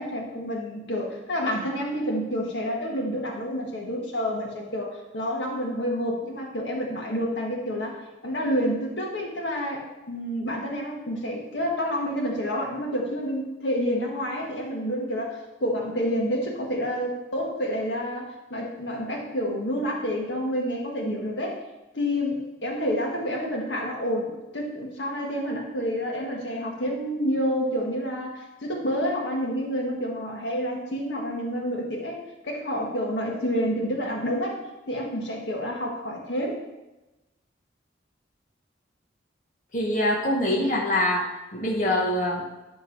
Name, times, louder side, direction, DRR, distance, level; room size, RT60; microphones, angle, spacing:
voice 1, 0.0-21.5 21.9-32.2 32.4-34.6 34.9-36.6, equal, 75° left, -1 dB, 1.7 m, -29 dB
voice 2, 39.7-41.3 41.5-42.4, left 1 dB, 45° left, -3 dB, 1.2 m, -24 dB
10.5 x 3.7 x 6.0 m, 1.0 s
head